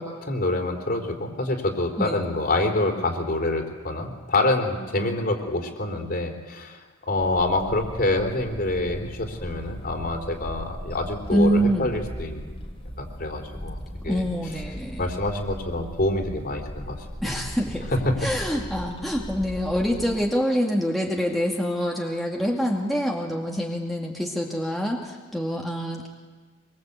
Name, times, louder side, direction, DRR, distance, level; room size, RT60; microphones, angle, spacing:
voice 1, 0.0-12.5 13.0-13.8 14.0-14.2 15.0-17.0 17.9-18.2, left 2 dB, 45° left, 4 dB, 3.8 m, -26 dB
sound 1, 7.2-20.3, equal, 30° left, 2.9 m, -38 dB
voice 2, 11.3-11.9 14.1-15.1 17.2-17.9 18.2-26.1, equal, ahead, -2 dB, 2.2 m, -25 dB
24.5 x 23.5 x 8.3 m, 1.4 s
head